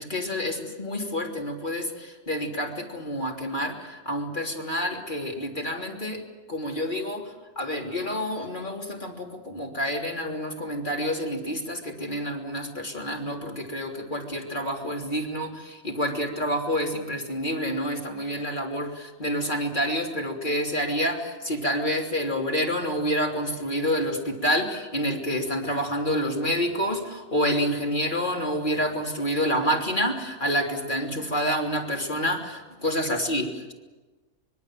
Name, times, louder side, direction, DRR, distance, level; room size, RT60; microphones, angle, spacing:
voice 1, 0.0-6.2 6.5-7.3 7.6-33.7, equal, 35° left, 0 dB, 3.5 m, -28 dB
25.5 x 22.5 x 7.6 m, 1.2 s
omnidirectional pair, 1.4 m